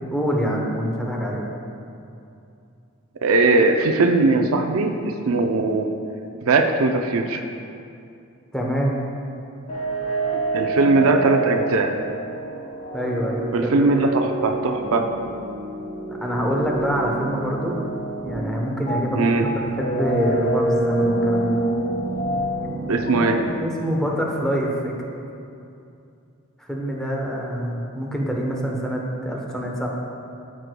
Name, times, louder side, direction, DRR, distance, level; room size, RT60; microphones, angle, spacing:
voice 1, 0.0-1.5 8.5-8.9 12.9-13.9 16.1-17.8 18.2-21.6 23.1-25.0 26.6-29.9, equal, 5° left, -2 dB, 0.9 m, -25 dB
voice 2, 3.2-5.9 6.4-7.4 10.5-11.9 13.5-15.3 19.2-19.5 22.9-23.4, right 3 dB, 70° right, 5 dB, 0.5 m, -20 dB
sound 1, 9.7-23.4, right 2 dB, 35° left, 1.6 m, -27 dB
14.0 x 6.2 x 2.2 m, 2.6 s
head